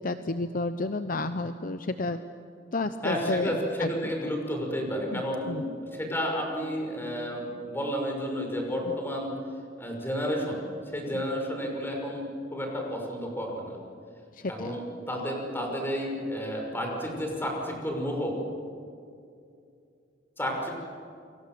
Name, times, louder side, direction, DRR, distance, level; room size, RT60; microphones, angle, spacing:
voice 1, 0.0-2.2 2.7-4.1 5.1-5.6 11.1-11.2 14.3-14.8, left 2 dB, 50° left, 10 dB, 0.8 m, -31 dB
voice 2, 3.0-9.3 9.8-10.7 10.9-13.8 14.5-18.3 20.4-20.7, equal, 10° left, 1 dB, 5.9 m, -31 dB
29.0 x 24.0 x 7.6 m, 2.5 s
head